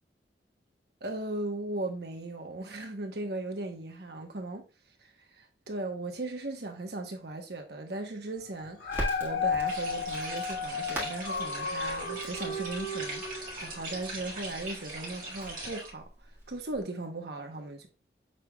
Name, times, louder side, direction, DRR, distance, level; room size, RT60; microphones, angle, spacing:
voice 1, 1.0-4.6 5.0-16.1 16.5-17.9, right 2 dB, 65° right, 1.0 m, -37 dB
Dog, 8.6-14.0 14.5-14.6, left 4 dB, 60° left, 1.1 m, -34 dB
Crackle, 8.9-16.8, right 1 dB, 10° right, 1.6 m, -43 dB
sound 1, 9.7-15.9, right 2 dB, 50° right, 1.7 m, -41 dB
6.7 x 3.4 x 2.3 m
head